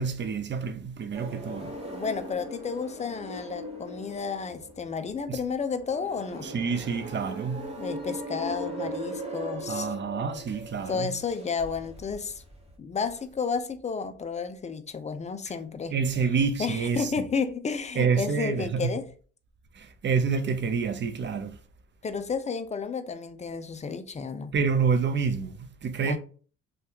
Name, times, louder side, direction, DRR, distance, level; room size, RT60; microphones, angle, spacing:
voice 1, 0.0-1.8 5.3-5.4 6.4-7.7 9.7-11.2 15.9-17.1 18.0-18.9 19.7-21.6 24.5-26.2, right 5 dB, 40° right, 0.5 m, -28 dB
sound 1, 1.1-12.7, equal, 20° right, 1.0 m, -39 dB
voice 2, 1.9-6.5 7.8-9.9 10.9-12.4 12.8-15.9 16.6-19.1 22.0-24.5 26.0-26.2, left 5 dB, 25° left, 0.3 m, -32 dB
2.8 x 2.3 x 3.4 m
cardioid pair, 90°, 30 cm